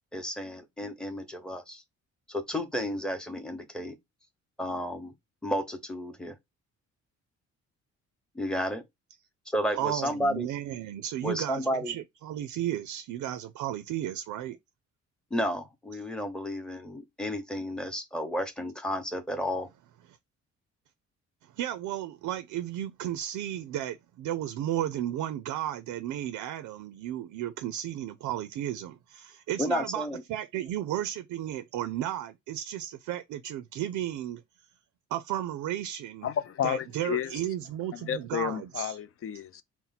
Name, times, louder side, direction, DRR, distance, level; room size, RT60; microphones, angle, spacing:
voice 1, 0.1-1.8 2.3-4.0 4.6-5.1 5.4-6.4 8.3-8.8 9.5-10.5 11.2-11.9 15.3-19.7 29.6-30.2, equal, 5° left, 0.8 m, -32 dB
voice 2, 9.8-14.6 21.6-34.4 35.1-36.3 36.6-39.0, right 12 dB, 75° right, 0.4 m, -34 dB
voice 3, 36.2-37.4 37.9-39.6, left 10 dB, 50° left, 0.4 m, -32 dB
4.2 x 2.1 x 4.0 m
cardioid pair, 90°, 30 cm